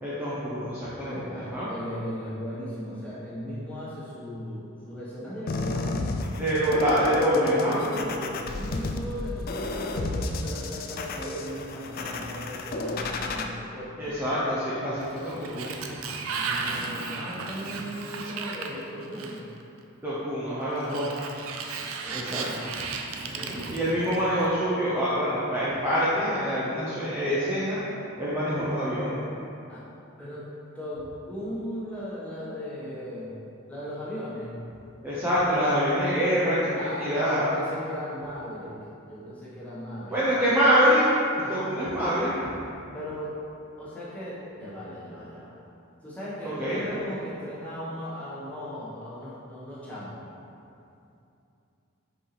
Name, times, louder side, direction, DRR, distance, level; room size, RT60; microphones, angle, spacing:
voice 1, 0.0-1.2 1.5-1.7 6.4-7.8 14.0-15.8 16.5-16.8 20.0-21.1 22.1-22.4 23.2-27.8 28.2-29.2 35.0-37.5 40.1-41.1 41.5-42.3 46.6-46.8, equal, 10° right, -11 dB, 0.7 m, -25 dB
voice 2, 1.0-6.0 7.3-14.2 16.6-19.5 22.0-22.6 23.2-24.1 29.7-29.8 30.2-30.5 30.7-33.3 33.7-34.6 36.7-38.7 39.1-40.2 41.4-41.9 42.9-43.4 43.8-45.6 46.0-50.2, equal, 5° left, -10 dB, 1.3 m, -37 dB
sound 1, 5.5-13.4, left 2 dB, 45° left, 0.3 m, -32 dB
Sliding door, 15.0-19.6 20.8-24.5, right 4 dB, 70° right, 0.5 m, -35 dB
5.6 x 5.3 x 3.3 m, 2.7 s
head